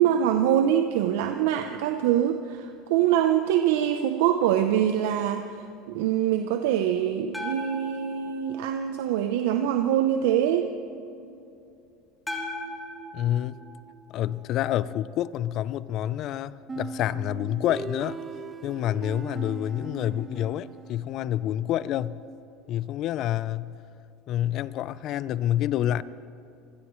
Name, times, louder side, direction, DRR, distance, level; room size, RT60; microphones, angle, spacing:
voice 1, 0.0-10.7, right 10 dB, 80° right, 7 dB, 0.7 m, -24 dB
sound 1, 7.3-9.5 12.3-14.6, equal, 10° left, 3.4 m, -39 dB
voice 2, 13.1-13.5 14.1-18.2 18.6-22.2 22.7-23.8 24.3-26.0, left 12 dB, 55° left, 18 dB, 0.5 m, -28 dB
sound 2, 16.7-21.4, right 4 dB, 25° right, 1.0 m, -39 dB
26.0 x 16.0 x 3.2 m, 2.7 s
supercardioid pair, 105°, 0 cm